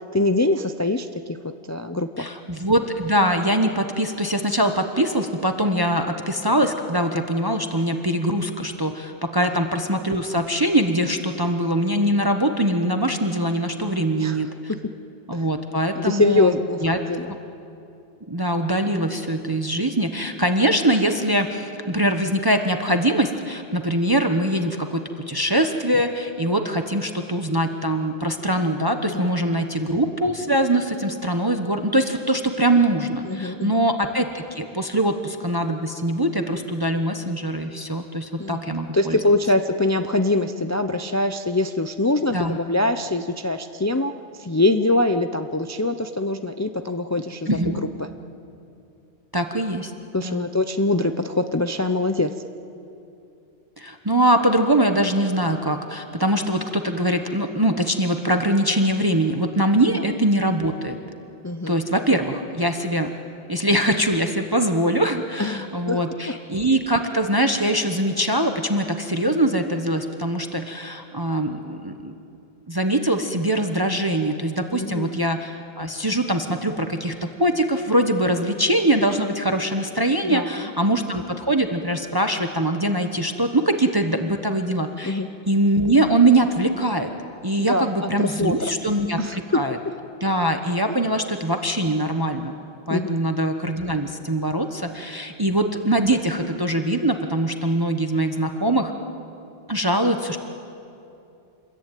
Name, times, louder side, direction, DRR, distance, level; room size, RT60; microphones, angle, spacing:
voice 1, 0.1-1.4 1.7-2.3 14.2-14.4 15.3-15.4 15.9-17.3 29.0-29.3 33.3-33.8 38.4-38.6 38.9-47.7 48.0-48.1 50.1-52.3 59.9-60.0 61.4-61.8 65.4-66.0 66.3-66.4 74.7-75.2 80.2-80.7 85.0-85.3 87.6-88.6 89.2-89.6 92.9-93.1, left 2 dB, 20° left, 7 dB, 0.6 m, -23 dB
voice 2, 2.2-14.5 15.3-17.0 18.3-39.2 42.3-42.6 47.5-47.8 49.3-49.9 50.2-50.5 53.8-61.0 61.7-63.1 63.5-72.1 72.7-87.1 87.4-89.8 90.2-92.5 92.9-98.9 99.7-100.4, right 1 dB, 20° right, 5 dB, 1.2 m, -22 dB
28.0 x 22.0 x 9.2 m, 2.7 s
omnidirectional pair, 1.1 m